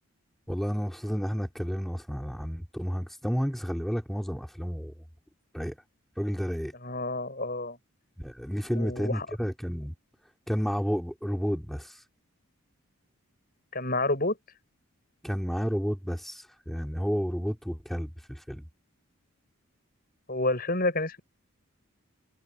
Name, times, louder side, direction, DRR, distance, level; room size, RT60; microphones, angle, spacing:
voice 1, 0.5-4.9 5.5-5.7 6.2-6.7 8.2-9.9 10.5-12.0 15.2-18.6, equal, ahead, 4.6 m, -31 dB
voice 2, 6.8-7.8 8.7-9.3 13.7-14.4 20.3-21.2, left 2 dB, 40° left, 7.9 m, -29 dB
head